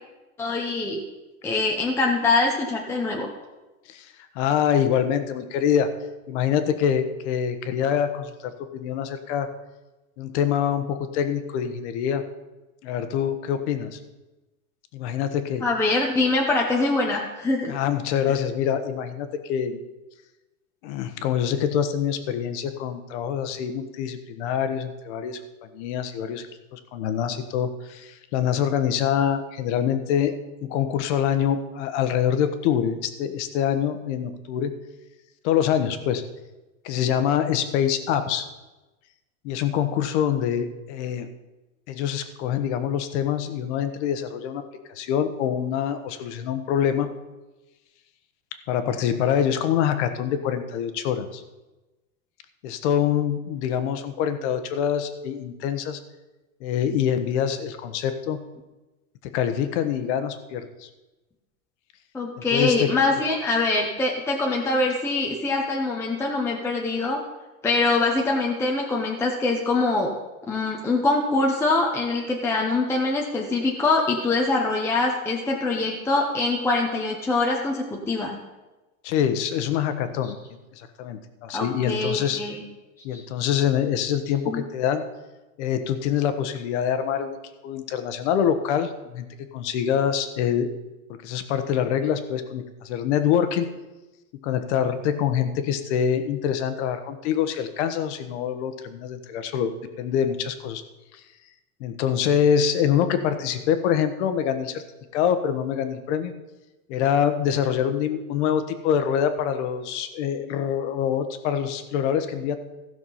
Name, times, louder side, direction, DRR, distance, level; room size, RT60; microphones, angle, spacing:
voice 1, 0.4-1.0 1.4-3.3 15.6-17.7 62.1-67.2 67.6-70.1 70.5-78.4 80.2-80.3 81.5-82.6 83.1-83.2 84.5-84.6, left 3 dB, 5° left, -1 dB, 0.7 m, -24 dB
voice 2, 4.3-5.9 6.3-9.5 10.2-12.2 12.8-14.0 14.9-15.6 17.7-19.8 20.8-26.5 26.7-30.3 30.6-34.7 35.4-36.2 36.8-38.5 39.4-41.3 41.9-44.6 44.9-47.1 48.7-51.4 52.6-56.0 56.6-58.4 59.2-60.9 62.4-62.9 79.0-80.4 80.8-82.4 83.0-85.0 85.6-87.4 87.6-89.2 89.5-90.7 91.2-93.7 94.4-99.7 100.0-100.8 101.8-104.8 105.1-106.3 106.9-112.6, left 9 dB, 50° left, 9 dB, 1.2 m, -25 dB
15.5 x 6.0 x 5.6 m, 1.1 s
supercardioid pair, 145°, 44 cm